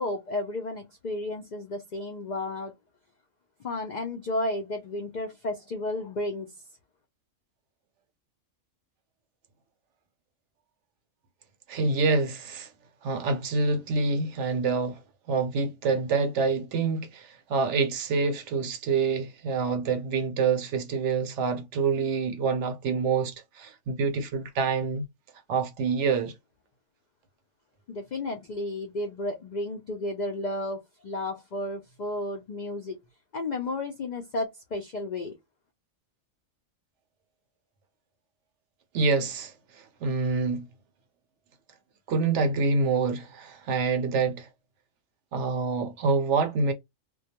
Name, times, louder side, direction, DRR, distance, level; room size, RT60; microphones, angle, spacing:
voice 1, 0.0-2.7 3.6-6.5 27.9-33.0 33.3-35.3, left 2 dB, 75° left, 0.4 m, -32 dB
voice 2, 11.7-12.7 13.0-15.0 15.3-25.0 25.5-26.3 38.9-40.6 42.1-44.5 45.3-46.7, right 4 dB, 70° right, 0.8 m, -26 dB
2.2 x 2.2 x 2.8 m
omnidirectional pair, 1.4 m